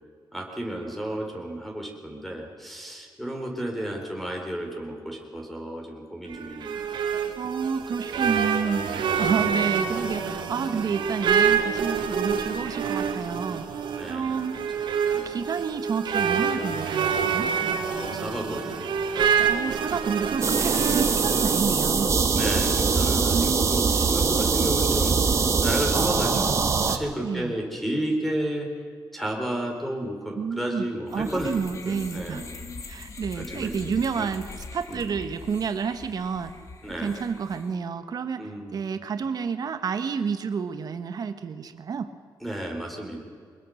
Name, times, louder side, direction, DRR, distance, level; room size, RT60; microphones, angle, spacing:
voice 1, 0.3-7.0 8.0-8.2 8.9-9.1 13.9-15.4 17.9-18.9 22.3-25.1 25.6-28.7 29.1-32.5 33.3-34.3 34.9-35.2 36.8-37.2 38.4-38.8 42.4-43.2, right 1 dB, ahead, 1 dB, 4.0 m, -32 dB
sound 1, 6.3-21.6, right 7 dB, 85° right, 2.1 m, -27 dB
voice 2, 7.4-8.8 9.2-13.6 14.1-14.6 15.2-17.5 19.5-22.2 23.3-23.7 27.2-27.5 30.4-30.9 31.1-32.4 32.9-36.5 37.0-38.4 38.7-42.1, right 6 dB, 55° right, 9 dB, 1.5 m, -29 dB
sound 2, 20.4-27.0, right 5 dB, 40° right, 1.5 m, -22 dB
sound 3, 31.1-37.7, left 3 dB, 40° left, 2.0 m, -42 dB
23.5 x 21.0 x 6.5 m, 2.1 s
wide cardioid pair, 145°, 8 cm